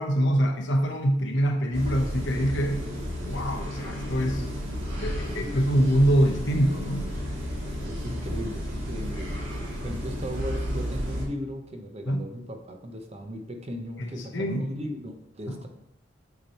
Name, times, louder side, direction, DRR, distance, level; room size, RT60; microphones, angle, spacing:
voice 1, 0.0-2.8 3.2-4.5 5.0-7.1 12.1-12.2 14.0-14.7 15.5-15.7, equal, 65° left, 3 dB, 0.8 m, -25 dB
sound 1, 1.7-11.3, equal, 85° right, 1.5 m, -32 dB
voice 2, 4.4-5.7 7.8-9.4 9.7-15.7, equal, 35° right, 4 dB, 0.7 m, -37 dB
8.1 x 2.9 x 4.3 m, 0.77 s
head